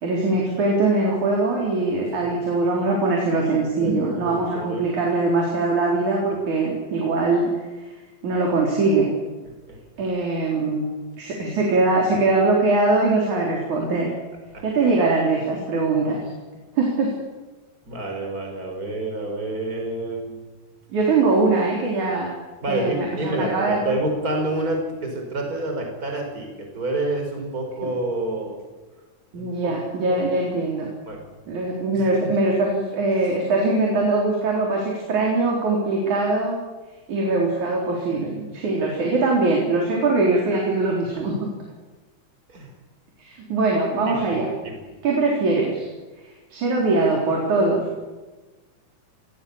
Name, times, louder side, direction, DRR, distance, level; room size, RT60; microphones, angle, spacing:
voice 1, 0.0-7.9 8.2-9.1 10.0-10.9 11.2-14.1 14.6-16.2 16.7-17.1 20.9-22.3 22.7-23.9 27.8-27.9 29.3-30.9 31.5-36.6 37.1-41.5 43.2-44.5 45.0-45.9 46.2-48.0, right 3 dB, 70° right, -2 dB, 5.5 m, -22 dB
voice 2, 3.8-4.9 9.7-9.8 14.5-14.6 17.9-20.4 22.6-28.6 29.3-30.3 31.1-31.3 31.9-32.4 42.5-42.7 44.1-44.8, right 2 dB, 25° right, 2 dB, 5.5 m, -29 dB
27.5 x 22.5 x 7.3 m, 1.2 s
omnidirectional pair, 3.5 m